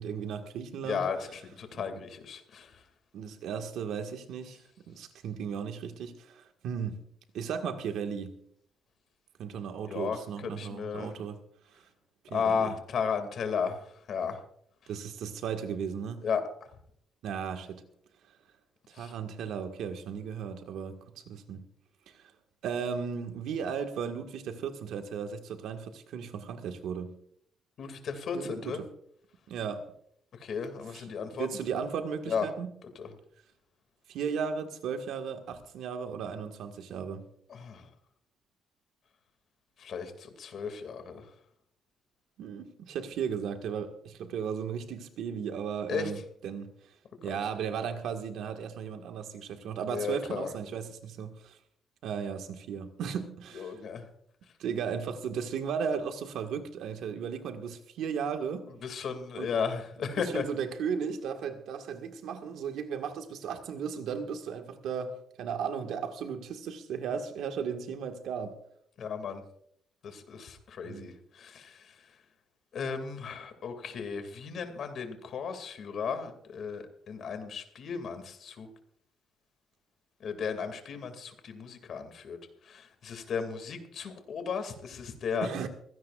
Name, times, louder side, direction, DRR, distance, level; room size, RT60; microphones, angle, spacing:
voice 1, 0.0-1.0 1.7-2.0 3.1-7.0 7.3-8.3 9.4-11.4 11.7-11.9 12.2-12.7 14.9-16.2 17.2-17.9 18.9-21.7 22.1-22.3 22.6-27.2 28.3-28.9 29.5-29.9 30.9-31.1 31.3-32.7 34.1-37.3 42.4-46.9 47.2-51.6 52.0-53.8 54.6-58.7 59.4-59.5 60.2-68.6 70.8-71.1 85.4-85.7, right 7 dB, 80° right, 1.8 m, -36 dB
voice 2, 0.8-2.8 9.9-10.2 10.4-11.1 12.3-14.4 16.2-16.4 18.9-19.1 27.8-28.8 30.4-31.5 32.3-32.5 33.0-33.1 37.5-37.9 39.8-41.3 45.9-46.1 47.2-47.4 49.9-50.5 53.5-54.1 58.8-60.4 69.0-69.4 70.0-72.0 72.7-78.7 80.2-85.5, left 6 dB, 55° left, 2.5 m, -35 dB
23.5 x 16.5 x 2.5 m
cardioid pair, 155°, 0 cm